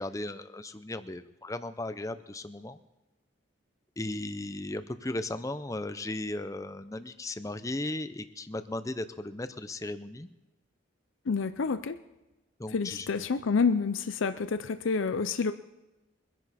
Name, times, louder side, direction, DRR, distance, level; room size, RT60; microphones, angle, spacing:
voice 1, 0.0-2.8 4.0-10.3 12.6-13.1, left 2 dB, 15° left, 11 dB, 0.6 m, -36 dB
voice 2, 11.3-12.0 12.7-15.5, left 5 dB, 85° left, 11 dB, 0.6 m, -28 dB
23.0 x 10.5 x 4.2 m, 1.1 s
head